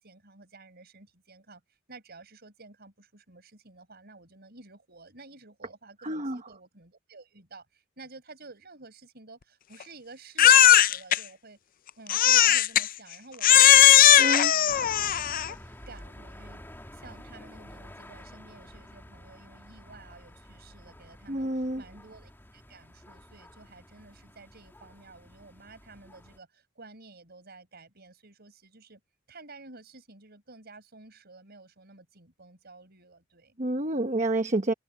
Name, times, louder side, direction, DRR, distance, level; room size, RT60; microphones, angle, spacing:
voice 1, 0.0-1.6 1.9-11.6 12.0-15.1 15.4-16.6 16.9-29.0 29.3-33.6, right 3 dB, 50° right, 5.9 m, -51 dB
voice 2, 6.0-6.4 14.2-14.5 21.3-21.8 33.6-34.7, right 1 dB, 35° right, 1.1 m, -28 dB
Crying sobbing, 10.4-11.2 12.1-12.9 13.4-15.5, left 11 dB, 45° left, 0.5 m, -18 dB
sound 1, 14.7-26.4, left 1 dB, 10° left, 2.4 m, -49 dB
head